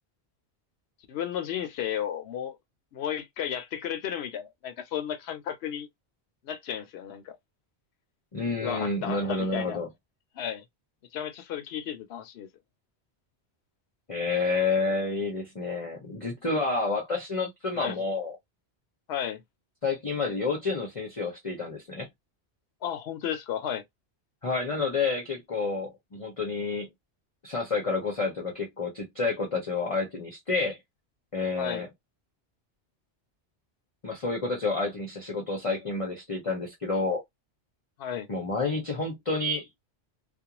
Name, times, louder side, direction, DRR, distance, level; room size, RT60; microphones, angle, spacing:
voice 1, 1.1-2.6 2.9-5.9 6.4-7.4 8.6-9.8 10.3-10.6 11.1-12.5 17.7-18.0 19.1-19.4 22.8-23.8 31.6-31.8 38.0-38.3, left 9 dB, 70° left, 0.8 m, -33 dB
voice 2, 8.3-9.9 14.1-18.3 19.8-22.1 24.4-26.9 27.4-30.8 31.3-31.9 34.0-37.2 38.3-39.7, left 3 dB, 35° left, 0.7 m, -29 dB
2.4 x 2.1 x 2.9 m
omnidirectional pair, 1.1 m